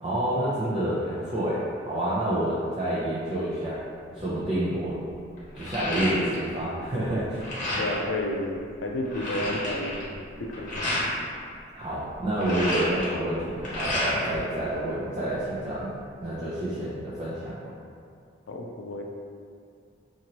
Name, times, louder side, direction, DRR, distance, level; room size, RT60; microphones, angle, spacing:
voice 1, 0.0-3.8 4.1-5.0 5.5-7.5 11.7-15.9 16.2-17.7, right 1 dB, 30° right, -10 dB, 0.4 m, -28 dB
sound 1, 4.4-4.5 4.9-6.6 6.9-8.1 8.6-8.7 8.9-11.1 12.1-14.4 14.7-15.6, left 1 dB, 45° left, 0.9 m, -31 dB
voice 2, 7.8-10.2 10.5-10.9 18.5-19.0, left 1 dB, 85° left, 1 dB, 0.4 m, -31 dB
2.8 x 2.5 x 2.9 m, 2.3 s
head